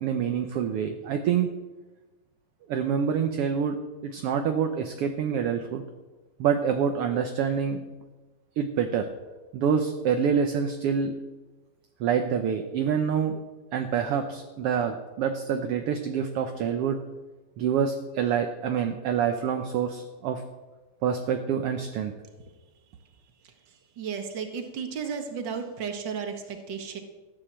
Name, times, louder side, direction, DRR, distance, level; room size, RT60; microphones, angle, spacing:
voice 1, 0.0-1.5 2.7-3.8 4.0-5.8 6.4-7.8 8.6-9.1 9.5-11.1 12.0-13.4 13.7-17.0 17.6-20.4 21.0-22.1, right 7 dB, 65° right, 6 dB, 1.6 m, -26 dB
voice 2, 24.0-27.0, right 6 dB, 45° right, 6 dB, 1.9 m, -33 dB
15.0 x 10.0 x 7.4 m, 1.2 s
omnidirectional pair, 3.3 m